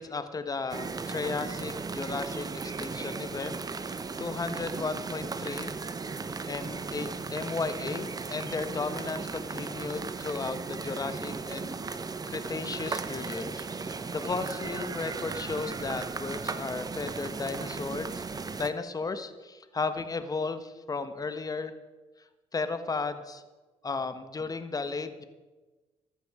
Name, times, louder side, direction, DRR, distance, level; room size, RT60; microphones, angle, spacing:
voice 1, 0.0-5.7 6.5-12.0 12.3-18.2 18.6-21.7 22.5-23.4 23.8-25.2, left 4 dB, 30° left, 10 dB, 1.3 m, -35 dB
sound 1, 0.7-18.7, right 4 dB, 30° right, 1.0 m, -36 dB
14.5 x 11.5 x 4.9 m, 1.2 s
cardioid pair, 85°, 13 cm